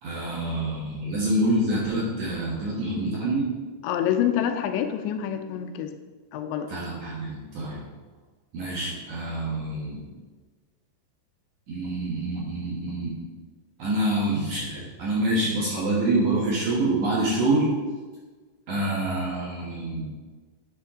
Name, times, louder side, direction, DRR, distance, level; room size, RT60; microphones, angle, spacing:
voice 1, 0.0-3.4 6.7-7.8 8.5-10.1 11.7-13.1 13.8-17.7 18.7-20.0, right 1 dB, 60° right, -5 dB, 2.1 m, -26 dB
voice 2, 3.8-5.9 6.3-6.7, left 10 dB, 85° left, 7 dB, 2.9 m, -26 dB
10.5 x 6.6 x 3.7 m, 1.3 s
omnidirectional pair, 5.1 m